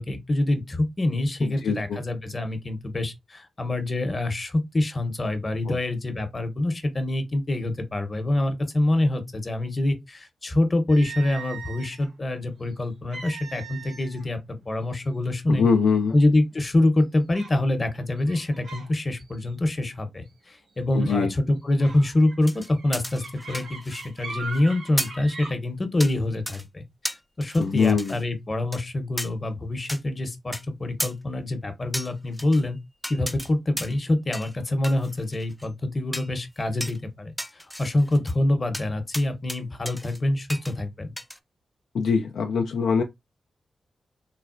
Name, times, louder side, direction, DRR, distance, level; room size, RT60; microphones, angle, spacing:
voice 1, 0.0-14.4 14.7-15.6 16.1-32.8 33.1-41.1, left 1 dB, 35° left, 0.8 m, -25 dB
voice 2, 1.4-2.0 5.7-5.8 15.5-16.1 20.9-21.3 27.6-28.2 41.9-43.0, left 5 dB, 90° left, 0.3 m, -23 dB
sound 1, 10.9-12.1 13.1-14.2 14.6-14.8 15.5-15.6 16.1-16.5 17.3-17.6 18.2-18.9 19.2-19.5 21.0-21.2 21.8-25.5, right 4 dB, 80° right, 1.5 m, -40 dB
sound 2, 22.4-24.2 24.5-24.6 25.0-25.2 26.0-26.2 26.5-26.6 27.0-28.2 28.7-28.8 29.2-29.3 29.9-30.0 30.5-30.6 31.0-31.1 31.9-32.6 33.0-33.5 33.8-34.0 34.3-34.6 34.8-35.7 36.1-36.3 36.8-37.0 37.4-38.3 38.7-38.9 39.1-39.6 39.9-40.2 40.5-40.7 41.2-41.4, equal, 5° left, 0.4 m, -34 dB
3.8 x 2.1 x 2.4 m
cardioid pair, 75°, 0 cm